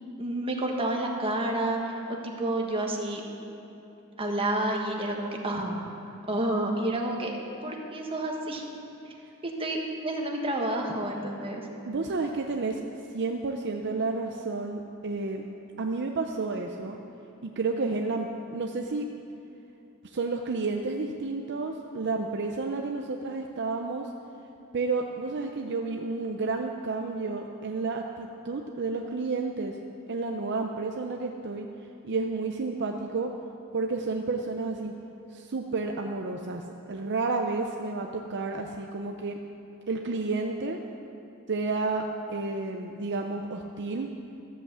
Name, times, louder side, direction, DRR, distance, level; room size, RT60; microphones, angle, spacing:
voice 1, 0.2-3.2 4.2-5.8 6.3-7.3 7.6-8.6 9.0-9.1 9.4-11.7, right 1 dB, 25° right, 0 dB, 1.5 m, -29 dB
voice 2, 11.8-12.8 13.1-15.4 15.8-17.0 17.4-19.1 20.0-24.1 24.7-29.8 30.1-31.7 32.0-33.4 33.7-34.9 35.3-39.4 39.9-40.8 41.5-44.1, right 3 dB, 55° right, 3 dB, 0.6 m, -31 dB
13.5 x 7.9 x 7.4 m, 2.8 s
head